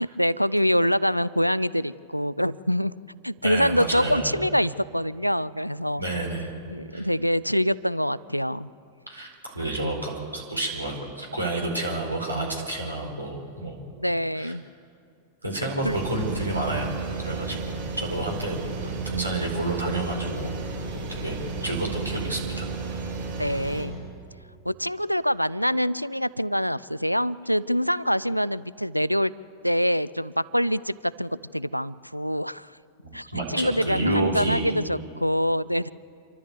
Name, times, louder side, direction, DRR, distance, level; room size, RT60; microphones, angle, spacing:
voice 1, 0.0-2.9 3.2-6.1 6.7-8.7 14.0-14.6 15.8-16.0 23.4-24.0 24.7-29.3 29.6-32.7 33.1-35.9, equal, 90° left, 20 dB, 0.4 m, -25 dB
voice 2, 3.4-4.3 6.0-6.5 6.9-7.1 9.1-13.8 14.3-14.5 15.4-17.0 17.2-20.6 21.1-22.7 33.0-34.7, right 2 dB, 85° right, -1 dB, 4.5 m, -30 dB
sound 1, 15.8-23.8, right 4 dB, 60° right, 7.2 m, -33 dB
27.5 x 12.5 x 8.2 m, 2.3 s
figure-of-eight pair, 90°, 0 cm